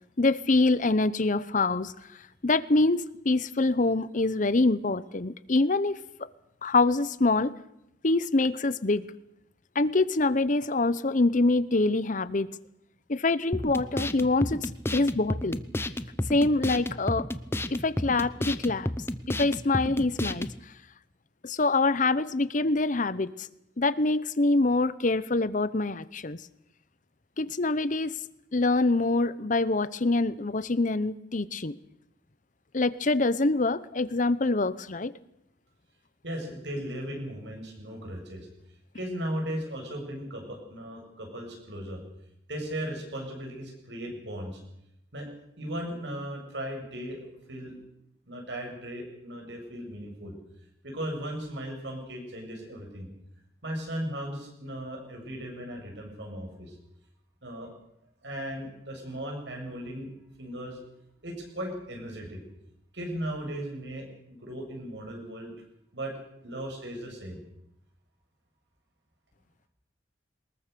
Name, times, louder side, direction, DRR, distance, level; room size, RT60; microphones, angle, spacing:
voice 1, 0.2-1.9 2.4-6.3 6.6-7.5 8.0-9.1 9.7-12.5 13.1-15.6 16.3-17.3 17.7-18.9 19.3-20.5 21.4-23.5 23.8-26.4 27.4-28.2 28.5-31.7 32.7-35.1, left 2 dB, 45° left, 16 dB, 0.8 m, -25 dB
sound 1, 13.5-20.6, left 1 dB, 15° left, 0.9 m, -32 dB
voice 2, 36.2-38.5 38.9-42.0 42.5-44.6 45.1-45.3 45.6-47.2 47.5-47.7 48.3-50.3 50.8-53.1 53.6-56.8 57.4-57.7 58.2-60.1 60.4-60.8 61.2-62.4 62.9-65.5 65.9-66.1 66.4-67.4, equal, 75° right, 2 dB, 7.7 m, -37 dB
22.5 x 20.5 x 6.9 m, 0.80 s
head